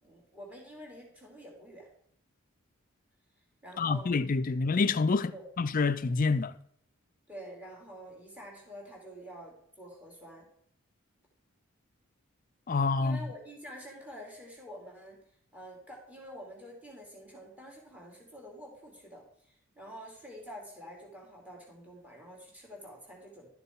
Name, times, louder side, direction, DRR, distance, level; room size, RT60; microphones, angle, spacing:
voice 1, 0.0-1.9 3.6-4.1 4.5-4.6 5.3-5.5 7.3-10.5 13.0-15.2 15.5-23.5, equal, 5° right, 2.7 m, -48 dB
voice 2, 3.8-6.6 12.7-13.2, left 4 dB, 40° left, 0.5 m, -27 dB
12.5 x 6.7 x 4.6 m
head